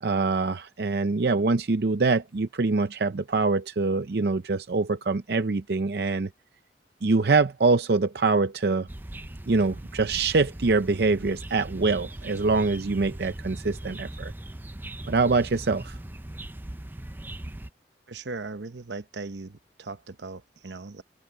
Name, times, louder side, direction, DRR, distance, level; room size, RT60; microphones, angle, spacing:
voice 1, 0.0-6.3 7.0-8.9 9.5-14.3 15.1-16.0, right 3 dB, 65° right, 0.6 m, -24 dB
sound 1, 8.9-17.7, right 1 dB, 10° right, 0.4 m, -39 dB
voice 2, 18.1-21.0, right 3 dB, 80° right, 0.9 m, -38 dB
head